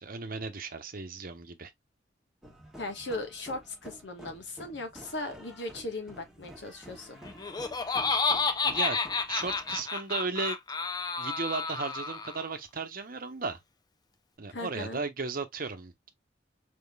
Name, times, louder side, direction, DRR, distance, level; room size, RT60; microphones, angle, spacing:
voice 1, 0.0-1.7 8.6-9.0 9.3-10.6 11.2-13.6 14.4-16.1, right 4 dB, 50° right, 0.9 m, -35 dB
sound 1, 2.4-9.8, equal, 5° right, 1.4 m, -50 dB
voice 2, 2.8-7.2 14.5-15.0, left 2 dB, 75° left, 1.3 m, -38 dB
Laughter, 7.2-12.5, left 4 dB, 20° left, 0.5 m, -30 dB
5.0 x 3.5 x 2.3 m
head